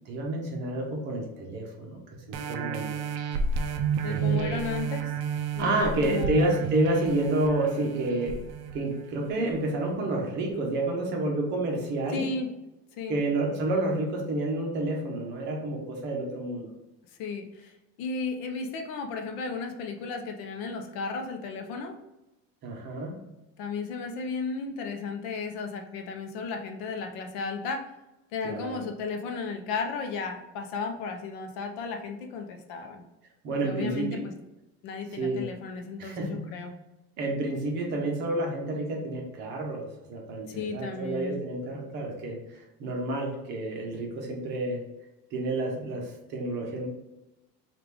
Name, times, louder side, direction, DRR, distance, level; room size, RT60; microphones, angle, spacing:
voice 1, 0.1-3.0 4.0-4.6 5.6-8.4 8.7-12.3 13.1-16.7 22.6-23.2 28.4-28.8 33.4-34.2 35.2-35.4 36.0-36.5 37.2-44.8 45.3-46.9, right 2 dB, 35° right, 0 dB, 0.8 m, -29 dB
sound 1, 2.3-9.5 10.0-10.1, right 6 dB, 50° right, 0.4 m, -31 dB
voice 2, 4.0-5.1 5.5-6.5 12.1-12.5 13.0-13.2 17.2-22.0 23.6-27.9 28.3-33.0 33.6-34.3 34.8-36.7 40.5-41.4, left 4 dB, 55° left, 4 dB, 0.6 m, -34 dB
4.9 x 2.5 x 3.4 m, 0.97 s
cardioid pair, 175°, 31 cm